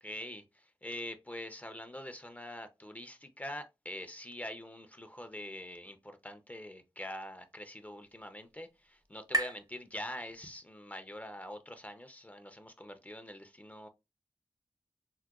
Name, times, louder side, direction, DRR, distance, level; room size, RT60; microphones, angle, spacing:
voice 1, 0.0-13.9, left 1 dB, 15° left, 0.4 m, -44 dB
sound 1, 7.0-10.8, right 2 dB, 45° right, 0.6 m, -40 dB
4.5 x 2.2 x 2.3 m
wide cardioid pair, 85°, 9 cm